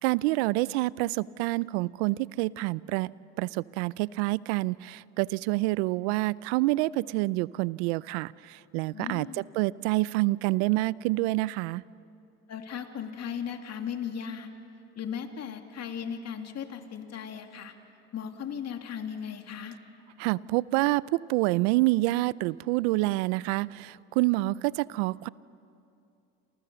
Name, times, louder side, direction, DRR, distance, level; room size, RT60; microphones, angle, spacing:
voice 1, 0.0-3.1 3.4-11.8 20.2-25.3, right 20 dB, 85° right, 21 dB, 0.6 m, -27 dB
voice 2, 8.9-9.4 12.5-14.5 15.0-17.7 18.1-19.8, left 8 dB, 55° left, 5 dB, 2.7 m, -37 dB
28.5 x 28.5 x 6.9 m, 2.6 s
supercardioid pair, 75°, 32 cm